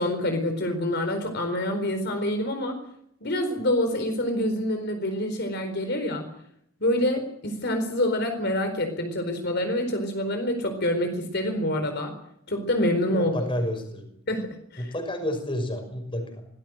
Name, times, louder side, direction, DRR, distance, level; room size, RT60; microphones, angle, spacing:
voice 1, 0.0-2.8 3.2-6.3 6.8-12.1 12.5-13.3 14.3-14.9, left 1 dB, 50° left, 6 dB, 4.4 m, -26 dB
voice 2, 13.1-14.1 14.8-16.5, left 1 dB, 25° left, 6 dB, 5.9 m, -30 dB
25.0 x 19.0 x 7.9 m, 0.73 s
head